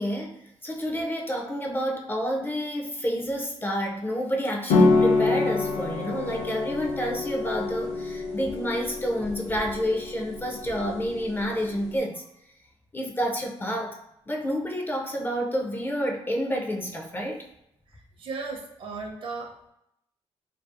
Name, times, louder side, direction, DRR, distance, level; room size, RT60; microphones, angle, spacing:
voice 1, 0.0-12.2 12.9-14.0 14.3-17.4, equal, 20° left, 0 dB, 0.4 m, -29 dB
sound 1, 4.7-12.0, left 3 dB, 80° left, 0.5 m, -26 dB
voice 2, 18.2-19.7, right 4 dB, 50° right, 1 dB, 0.6 m, -36 dB
2.6 x 2.3 x 2.4 m, 0.80 s
cardioid pair, 105°, 11 cm